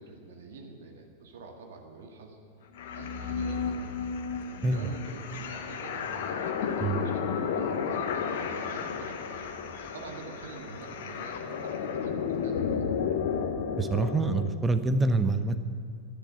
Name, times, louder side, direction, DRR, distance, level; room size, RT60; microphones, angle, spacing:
voice 1, 0.0-2.4 2.9-3.9 4.7-9.2 9.9-12.9, right 3 dB, 60° right, 3 dB, 1.9 m, -47 dB
sound 1, 2.7-14.5, left 6 dB, 55° left, 1.1 m, -32 dB
sound 2, 3.2-11.9, right 3 dB, 30° right, 2.2 m, -52 dB
voice 2, 4.6-4.9 6.8-7.0 13.8-15.6, right 3 dB, 15° right, 10 dB, 0.8 m, -26 dB
10.5 x 10.5 x 9.2 m, 2.2 s
figure-of-eight pair, 90°, 0 cm